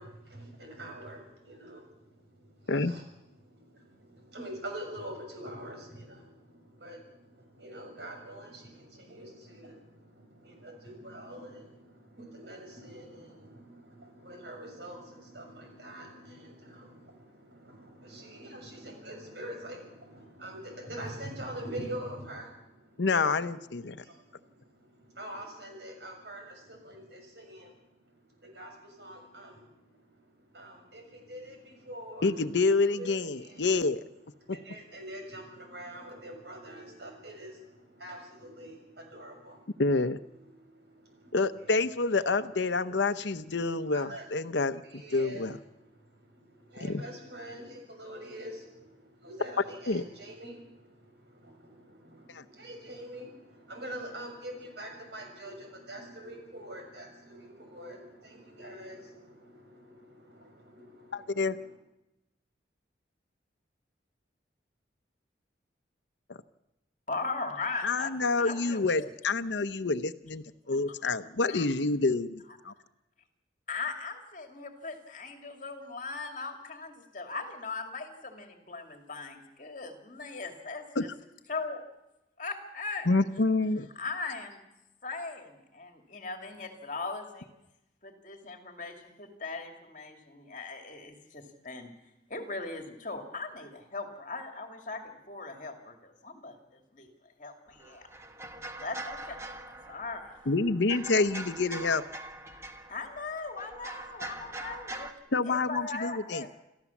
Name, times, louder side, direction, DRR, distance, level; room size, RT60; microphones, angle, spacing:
voice 1, 0.0-23.1 23.6-33.7 34.0-34.1 34.4-39.8 40.3-41.8 42.1-42.2 42.7-43.0 43.9-61.7, right 1 dB, 65° right, 3 dB, 6.7 m, -45 dB
voice 2, 23.0-24.0 32.2-34.0 39.8-40.2 41.3-44.8 45.1-45.5 46.8-47.0 49.9-50.0 52.3-52.4 61.1-61.6 67.8-72.7 81.0-81.1 83.1-83.9 100.5-102.0 105.3-106.4, left 3 dB, 70° left, 12 dB, 0.8 m, -28 dB
voice 3, 67.1-68.1 68.4-69.1 70.7-70.8 71.5-71.6 73.7-81.1 81.5-81.9 82.4-83.1 83.9-84.6 85.0-87.5 88.0-91.9 92.3-97.1 97.4-98.1 98.8-99.4 99.7-100.3 102.9-105.1 105.5-106.5, left 3 dB, 45° left, 4 dB, 2.6 m, -39 dB
sound 1, 97.7-105.1, right 1 dB, 15° right, 1.4 m, -43 dB
28.0 x 14.5 x 7.2 m, 0.94 s
head